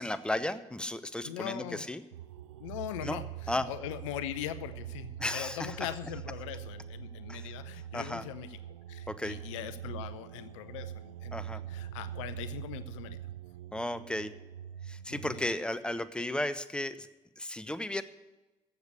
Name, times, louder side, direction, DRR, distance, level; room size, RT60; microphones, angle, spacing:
voice 1, 0.0-2.0 3.0-3.2 3.5-3.7 5.2-5.8 7.3-7.5 7.9-8.2 9.1-9.4 11.3-11.6 13.7-14.3 14.8-17.1 17.4-18.0, left 1 dB, 5° left, 14 dB, 0.8 m, -34 dB
voice 2, 1.2-1.9 2.6-11.4 11.7-13.2 15.1-15.4, left 12 dB, 70° left, 14 dB, 0.6 m, -41 dB
sound 1, 2.1-15.5, right 11 dB, 80° right, 0.4 m, -43 dB
14.5 x 6.7 x 8.3 m, 1.1 s
figure-of-eight pair, 50°, 16 cm